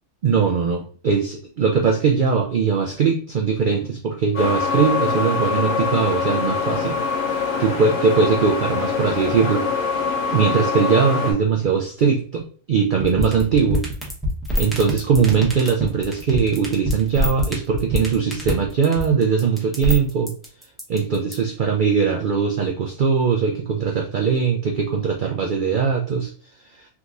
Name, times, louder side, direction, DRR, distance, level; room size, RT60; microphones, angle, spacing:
voice 1, 0.2-7.0 7.6-9.6 10.3-13.8 14.6-20.3 20.9-26.3, right 6 dB, 80° right, 1 dB, 0.4 m, -20 dB
sound 1, 4.3-11.3, left 5 dB, 60° left, 1.2 m, -24 dB
sound 2, 13.0-21.3, equal, ahead, 0.8 m, -24 dB
3.5 x 2.9 x 2.4 m, 0.42 s
omnidirectional pair, 1.4 m